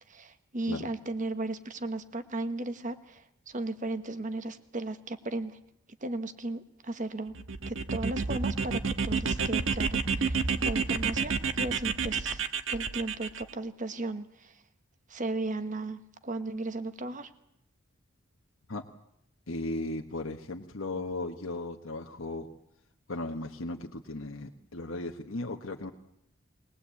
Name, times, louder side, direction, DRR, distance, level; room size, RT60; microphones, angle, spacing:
voice 1, 0.1-5.6 6.0-7.3 7.7-12.4 12.7-14.6 15.1-17.3, right 2 dB, 40° right, 10 dB, 1.3 m, -36 dB
sound 1, 7.3-13.4, right 5 dB, 65° right, 1.4 m, -30 dB
voice 2, 19.5-22.5 23.1-25.9, left 2 dB, 70° left, 2 dB, 1.3 m, -36 dB
22.0 x 20.0 x 8.5 m, 0.77 s
head